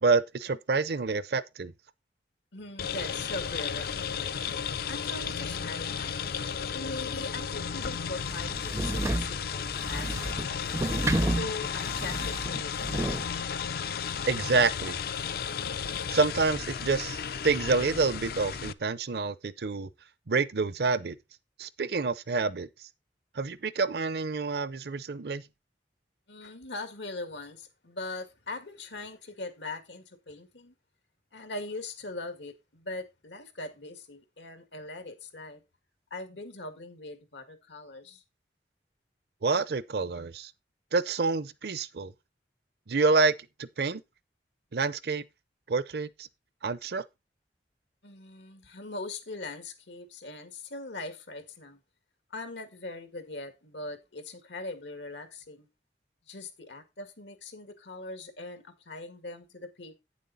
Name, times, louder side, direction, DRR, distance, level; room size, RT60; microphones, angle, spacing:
voice 1, 0.0-1.7 14.3-15.0 16.1-19.9 20.3-21.2 21.6-22.9 23.3-25.4 39.4-40.5 40.9-42.1 42.9-44.0 44.7-45.2 45.7-46.3 46.6-47.0, right 4 dB, 65° right, 0.6 m, -28 dB
voice 2, 2.5-4.4 4.9-6.1 6.7-10.8 11.2-13.2 26.3-30.7 31.3-35.6 36.1-38.2 48.0-51.8 52.3-55.7 56.3-60.0, left 2 dB, 90° left, 1.9 m, -41 dB
sound 1, 2.8-18.7, left 7 dB, 55° left, 0.4 m, -34 dB
sound 2, 8.2-13.2, right 1 dB, 15° right, 0.4 m, -31 dB
9.1 x 7.3 x 4.0 m
head